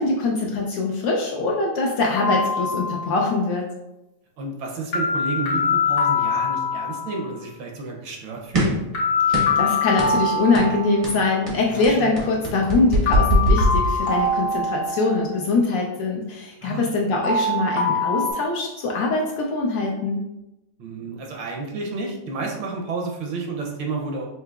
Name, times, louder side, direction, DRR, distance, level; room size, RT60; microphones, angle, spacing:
voice 1, 0.0-3.6 9.3-20.2, left 3 dB, 75° left, -1 dB, 1.1 m, -23 dB
sound 1, 2.2-3.3 4.9-7.2 8.9-11.3 13.1-15.4 17.2-18.3, left 4 dB, 60° left, 1.2 m, -24 dB
voice 2, 4.4-8.8 11.7-12.1 16.6-16.8 20.8-24.3, right 3 dB, 75° right, 0 dB, 1.3 m, -31 dB
sound 2, 8.5-8.9 9.3-9.6 10.0-10.2 10.5-10.8 11.0-14.4, equal, 35° right, 0.5 m, -22 dB
5.6 x 2.8 x 2.3 m, 0.94 s
omnidirectional pair, 2.3 m